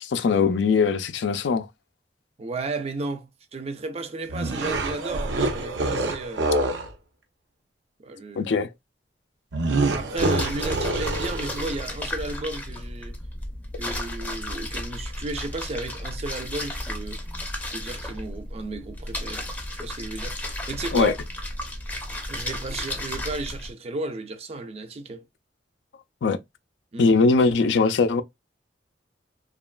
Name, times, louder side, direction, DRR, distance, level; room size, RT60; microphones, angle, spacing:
voice 1, 0.0-1.7 8.3-8.7 20.9-21.1 26.2-26.4 27.0-28.2, left 4 dB, 75° left, 0.4 m, -21 dB
voice 2, 2.4-6.5 8.0-8.5 9.9-13.2 13.8-17.2 17.7-19.4 19.8-21.1 22.3-25.2 26.9-27.1, right 3 dB, 35° right, 0.5 m, -33 dB
sound 1, 4.3-6.9 9.5-11.8, right 2 dB, 85° right, 0.6 m, -26 dB
sound 2, 10.2-23.7, left 1 dB, 10° left, 0.6 m, -33 dB
2.9 x 2.3 x 2.2 m
head